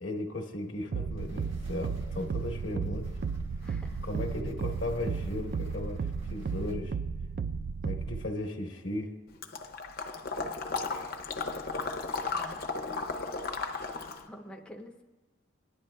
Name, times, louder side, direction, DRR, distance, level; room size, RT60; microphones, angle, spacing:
voice 1, 0.0-3.1 4.0-6.9 7.8-9.1, left 1 dB, 75° left, 1 dB, 1.1 m, -36 dB
sound 1, 0.9-8.3, right 5 dB, 50° right, 0.3 m, -34 dB
sound 2, 1.2-6.7, equal, 75° right, 1.5 m, -47 dB
voice 2, 3.6-4.0 12.3-12.6 14.2-15.0, equal, 5° left, 0 dB, 0.5 m, -48 dB
Water / Liquid, 9.4-14.3, left 4 dB, 50° left, 0.7 m, -35 dB
19.5 x 10.5 x 2.2 m, 1.2 s
head